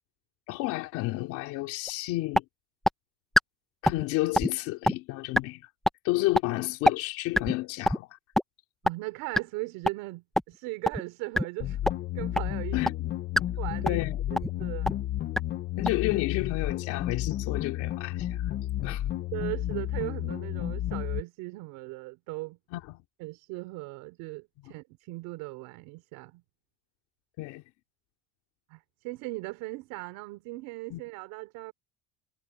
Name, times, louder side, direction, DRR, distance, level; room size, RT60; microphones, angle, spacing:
voice 1, 0.5-2.4 3.8-5.7 6.0-8.2 12.7-13.1 13.8-14.2 15.8-18.5 18.8-19.1 22.7-23.0 24.6-24.7 27.4-27.6 30.9-31.0, left 19 dB, 65° left, 3.1 m, -31 dB
sound 1, 1.9-2.0 2.4-2.5 2.9-3.0 3.4-3.5 3.9-4.1 4.4-4.5 4.9-5.0 5.4-5.5 5.9-6.0 6.4-6.5 6.9-7.0 7.4-7.5 7.9-8.0 8.4-8.5 8.9-9.0 9.4-9.5 9.9-10.0 10.4-10.5 10.9-11.0 11.4-11.5 11.9-12.0 12.4-12.5 12.9-13.0 13.4-13.5 13.9-14.1 14.4-14.5 14.9-15.0 15.4-15.5 15.9-16.0, left 1 dB, ahead, 1.0 m, -22 dB
voice 2, 8.8-12.8 13.6-14.0 14.3-14.9 19.3-22.6 23.2-26.4 28.7-31.7, right 22 dB, 70° right, 4.3 m, -38 dB
sound 2, 11.6-21.2, left 13 dB, 35° left, 0.8 m, -32 dB
cardioid pair, 180°, 33 cm